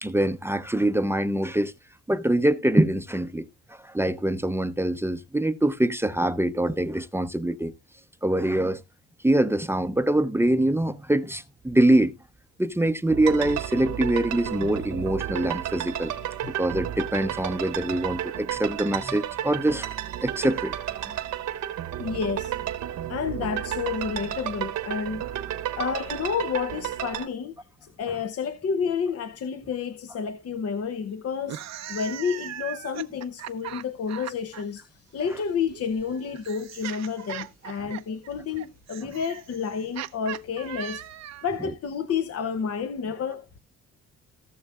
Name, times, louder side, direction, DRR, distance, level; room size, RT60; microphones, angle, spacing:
voice 1, 0.0-1.7 2.1-3.5 3.8-7.7 8.2-8.8 9.2-12.1 12.6-16.1 16.5-20.0 20.2-21.2, right 1 dB, 10° right, 0.7 m, -24 dB
sound 1, 13.1-27.3, right 11 dB, 80° right, 1.5 m, -32 dB
voice 2, 22.0-22.5 23.1-25.3 25.8-27.6 27.8-31.6 31.9-41.0 41.4-43.6, left 6 dB, 50° left, 0.9 m, -30 dB
sound 2, 31.4-34.6 35.7-41.6, right 11 dB, 60° right, 0.7 m, -39 dB
17.5 x 6.6 x 2.4 m
cardioid pair, 90°, 30 cm